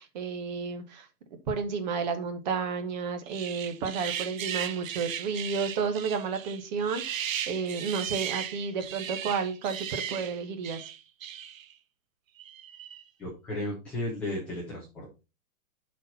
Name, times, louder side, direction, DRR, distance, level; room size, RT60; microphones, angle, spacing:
voice 1, 0.0-10.9, right 5 dB, 30° right, 8 dB, 1.2 m, -32 dB
sound 1, 3.3-11.7 12.4-13.0, right 10 dB, 60° right, 0.9 m, -37 dB
voice 2, 13.2-15.2, left 1 dB, 5° left, -7 dB, 0.5 m, -34 dB
11.0 x 4.4 x 4.1 m, 0.28 s
hypercardioid pair, 165°, 46 cm